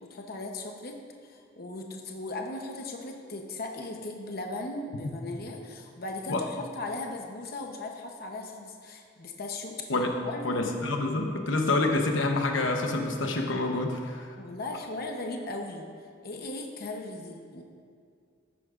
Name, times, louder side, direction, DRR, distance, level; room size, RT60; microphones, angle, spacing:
voice 1, 0.0-9.8 10.2-10.9 14.4-15.9 16.2-17.6, left 2 dB, 55° left, 2 dB, 0.9 m, -37 dB
voice 2, 10.4-14.3, left 2 dB, 80° left, 3 dB, 0.9 m, -27 dB
14.5 x 11.0 x 2.5 m, 2.2 s
head